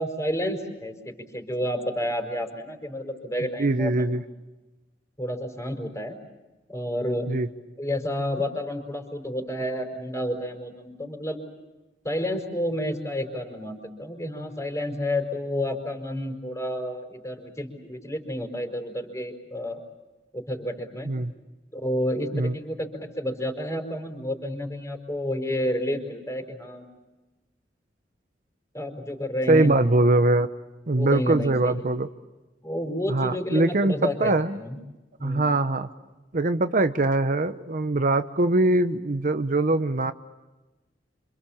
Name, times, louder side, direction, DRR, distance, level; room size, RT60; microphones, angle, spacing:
voice 1, 0.0-4.2 5.2-6.2 6.7-7.3 7.8-11.4 12.0-19.8 20.3-21.1 21.7-22.9 23.2-26.8 28.7-29.7 30.9-31.9 32.6-34.8 35.2-35.5, left 1 dB, 15° left, 5 dB, 4.7 m, -30 dB
voice 2, 3.6-4.2 7.3-7.5 21.0-21.3 22.3-22.5 29.5-30.5 30.9-32.1 33.1-34.6 35.2-35.9 36.3-40.1, right 2 dB, 50° right, 10 dB, 0.9 m, -22 dB
27.5 x 27.0 x 7.3 m, 1.1 s
head